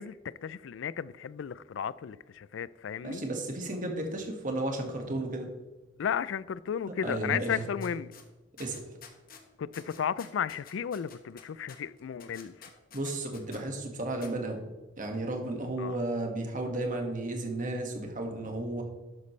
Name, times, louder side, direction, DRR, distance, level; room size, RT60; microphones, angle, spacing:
voice 1, 0.0-3.2 6.0-8.1 9.6-12.7 15.8-16.0, left 7 dB, 70° left, 0.4 m, -34 dB
voice 2, 3.0-5.5 7.0-7.6 8.6-8.8 12.9-14.6 15.0-18.8, right 2 dB, 45° right, 1.8 m, -33 dB
sound 1, 7.8-8.2 8.6-9.4 9.7-13.6 14.2-14.3, left 7 dB, 50° left, 1.3 m, -50 dB
12.5 x 8.2 x 3.2 m
head